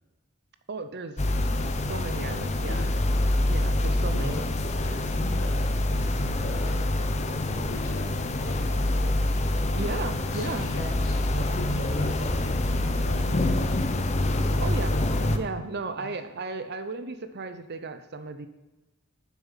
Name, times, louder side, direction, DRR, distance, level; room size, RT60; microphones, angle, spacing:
voice 1, 0.7-1.2 1.6-2.9 3.5-4.5 9.8-10.7 14.6-15.0 15.3-18.5, right 3 dB, 50° right, 10 dB, 0.7 m, -35 dB
sound 1, 1.2-15.4, left 1 dB, 30° left, 0.7 m, -26 dB
voice 2, 2.5-2.9 4.1-4.4 4.8-5.6 5.9-6.9 7.3-8.5 10.3-13.7 15.2-16.1, left 1 dB, 65° left, -2 dB, 2.2 m, -39 dB
9.3 x 7.3 x 5.7 m, 1.1 s
head